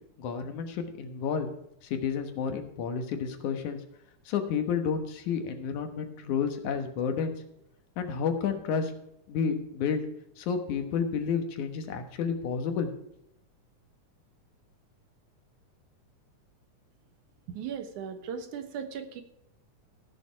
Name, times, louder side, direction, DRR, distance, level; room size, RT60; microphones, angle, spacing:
voice 1, 0.2-1.5 1.8-3.8 4.3-7.3 8.0-8.9 9.3-10.0 10.4-12.9, left 6 dB, 80° left, 6 dB, 2.8 m, -30 dB
voice 2, 17.5-19.2, right 7 dB, 85° right, 8 dB, 2.7 m, -37 dB
16.0 x 6.8 x 4.6 m, 0.79 s
omnidirectional pair, 3.4 m